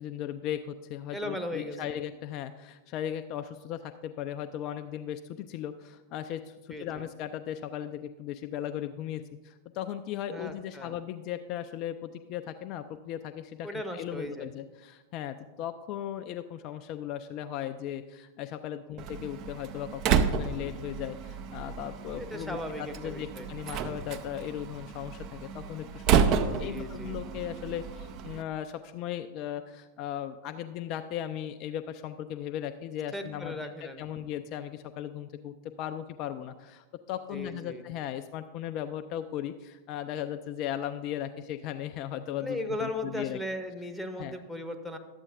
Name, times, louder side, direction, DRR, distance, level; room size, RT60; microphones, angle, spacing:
voice 1, 0.0-33.6 33.8-43.4 44.2-44.4, left 11 dB, 40° left, 8 dB, 0.3 m, -37 dB
voice 2, 1.1-2.0 6.7-7.0 10.3-11.0 13.6-14.5 22.2-23.5 26.3-27.1 33.1-34.2 37.3-37.8 42.4-45.0, left 1 dB, ahead, 6 dB, 0.8 m, -37 dB
Slam, 19.0-28.4, right 7 dB, 40° right, 0.5 m, -31 dB
12.0 x 7.8 x 2.6 m, 1.1 s
figure-of-eight pair, 90°, 0 cm